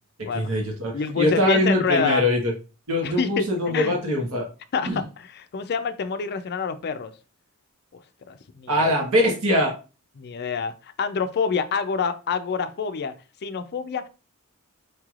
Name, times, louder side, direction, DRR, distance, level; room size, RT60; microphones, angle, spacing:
voice 1, 0.2-2.5 2.9-4.5 4.9-5.0 8.7-9.7, left 1 dB, 70° right, 1.1 m, -22 dB
voice 2, 0.9-2.2 3.0-4.0 4.7-7.1 8.3-8.9 10.2-13.1 13.4-14.1, left 5 dB, 50° left, 0.4 m, -27 dB
4.7 x 3.1 x 2.4 m
head